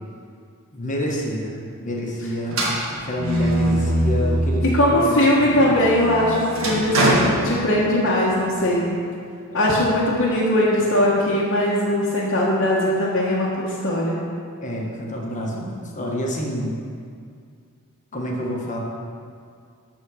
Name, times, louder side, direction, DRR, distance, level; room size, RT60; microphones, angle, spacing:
voice 1, 0.7-2.6 2.9-5.7 9.5-9.6 14.6-16.7 18.1-18.8, equal, 35° left, -2 dB, 1.5 m, -28 dB
sound 1, 2.5-4.9 5.3-8.2, right 1 dB, 65° right, 1.9 m, -23 dB
voice 2, 4.6-8.9 9.5-14.2, left 1 dB, 60° left, -6 dB, 1.4 m, -20 dB
13.0 x 4.4 x 6.3 m, 2.3 s
head